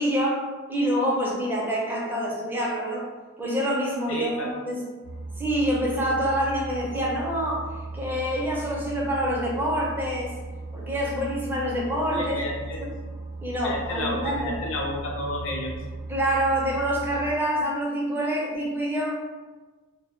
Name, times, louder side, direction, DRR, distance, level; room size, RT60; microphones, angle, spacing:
voice 1, 0.0-3.0 3.4-4.8 5.4-7.7 7.9-10.3 10.7-12.4 12.8-12.9 13.4-14.5 16.1-19.1, equal, 10° right, -4 dB, 0.4 m, -26 dB
voice 2, 4.1-4.5 12.1-12.8 13.6-15.8, left 1 dB, 70° left, -1 dB, 0.5 m, -31 dB
sound 1, 5.0-17.3, right 3 dB, 70° right, 0.4 m, -37 dB
2.1 x 2.0 x 3.0 m, 1.3 s
head